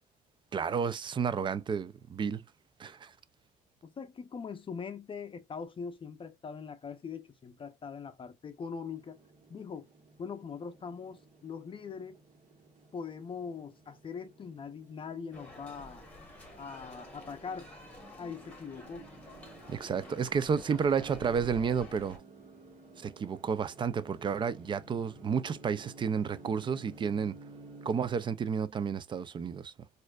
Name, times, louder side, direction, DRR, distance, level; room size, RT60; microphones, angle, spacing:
voice 1, 0.5-2.4 2.8-3.1 19.7-22.2 23.0-27.3 27.8-29.7, right 6 dB, 30° right, 0.3 m, -31 dB
voice 2, 3.8-9.2 9.5-9.9 10.2-12.2 12.9-16.0 16.6-17.7 18.2-19.1, left 6 dB, 30° left, 0.5 m, -42 dB
sound 1, 8.9-27.9, right 2 dB, 50° right, 1.6 m, -54 dB
sound 2, 15.3-22.2, left 1 dB, 10° left, 1.3 m, -50 dB
4.2 x 2.5 x 2.3 m
cardioid pair, 110°, 17 cm